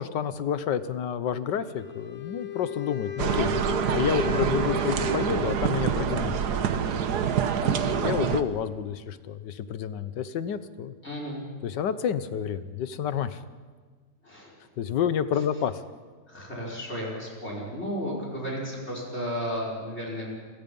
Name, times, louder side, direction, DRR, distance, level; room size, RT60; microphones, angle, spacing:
voice 1, 0.0-3.5 3.9-6.4 8.0-10.9 11.6-13.4 14.8-15.8, left 8 dB, 80° left, 13 dB, 1.6 m, -29 dB
Wind instrument woodwind instrument, 1.6-6.0, left 12 dB, 60° left, 2.0 m, -36 dB
sound 1, 3.2-8.4, right 7 dB, 70° right, 1.6 m, -26 dB
voice 2, 7.6-8.1 11.0-11.4 14.2-14.5 16.3-20.3, equal, 35° left, -2 dB, 5.6 m, -33 dB
30.0 x 23.5 x 5.5 m, 1.5 s
omnidirectional pair, 1.8 m